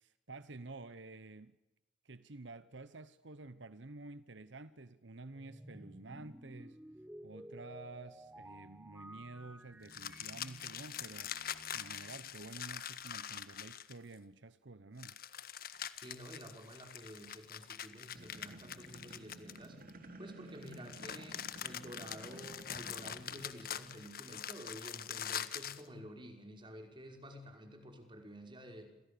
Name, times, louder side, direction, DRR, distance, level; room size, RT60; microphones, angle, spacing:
voice 1, 0.0-1.6 2.0-6.8 7.2-11.3 11.7-15.2, right 2 dB, 75° right, 1.0 m, -50 dB
sound 1, 5.3-12.6, right 1 dB, 5° right, 0.9 m, -54 dB
sound 2, 9.9-14.1 15.0-19.9 20.6-25.9, left 9 dB, 50° left, 1.5 m, -44 dB
voice 2, 16.0-19.8 20.2-28.9, equal, 25° right, 5.4 m, -51 dB
sound 3, 18.1-23.8, right 1 dB, 45° right, 3.4 m, -53 dB
29.0 x 27.5 x 6.9 m
head